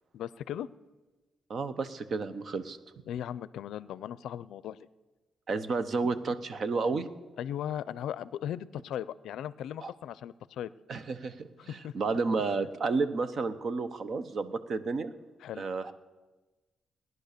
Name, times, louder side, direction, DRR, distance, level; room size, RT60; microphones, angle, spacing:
voice 1, 0.1-0.7 3.1-4.9 7.4-10.7 11.7-11.9 15.4-15.6, left 10 dB, 90° left, 18 dB, 0.4 m, -37 dB
voice 2, 1.5-2.8 5.5-7.1 9.8-9.9 10.9-15.1 15.6-15.9, right 4 dB, 45° right, 12 dB, 0.9 m, -31 dB
18.0 x 11.0 x 6.7 m, 1.2 s
cardioid pair, 150°, 0 cm